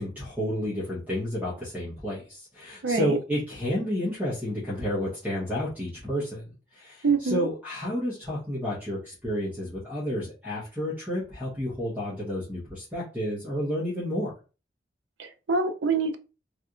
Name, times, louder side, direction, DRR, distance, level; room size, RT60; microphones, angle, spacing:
voice 1, 0.0-14.3, equal, 10° right, 1.1 m, -31 dB
voice 2, 2.8-3.2 7.0-7.5 15.2-16.2, right 4 dB, 90° right, 0.5 m, -25 dB
3.3 x 2.8 x 2.4 m
head